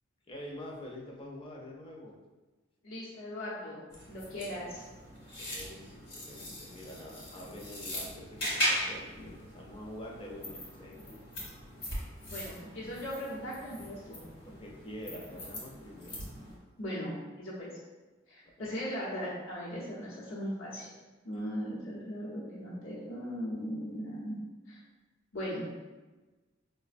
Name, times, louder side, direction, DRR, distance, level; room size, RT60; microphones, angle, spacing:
voice 1, 0.3-2.2 5.4-11.2 14.4-16.2 18.6-18.7, left 1 dB, 25° left, -2 dB, 0.5 m, -46 dB
voice 2, 2.8-4.8 12.3-14.2 16.8-17.7 18.3-20.9 21.2-24.4 24.7-24.8 25.3-25.7, equal, 80° left, -8 dB, 0.8 m, -38 dB
sound 1, 3.9-16.6, equal, 50° left, 1.0 m, -39 dB
4.8 x 2.1 x 2.5 m, 1.2 s
head